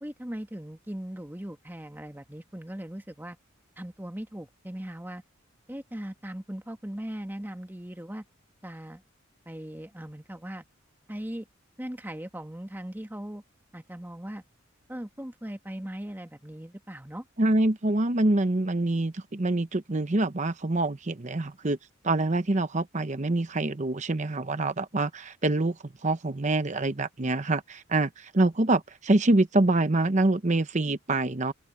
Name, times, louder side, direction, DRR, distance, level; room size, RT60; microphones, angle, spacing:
voice 1, 0.0-3.4 3.8-5.2 5.7-8.2 8.6-9.0 9.4-10.6 11.1-11.5 11.8-13.4 13.7-14.4 14.9-17.2, right 1 dB, 10° right, 1.6 m, -39 dB
voice 2, 17.4-21.8 22.0-25.8 26.0-31.5, right 2 dB, 35° right, 0.8 m, -25 dB
open air
head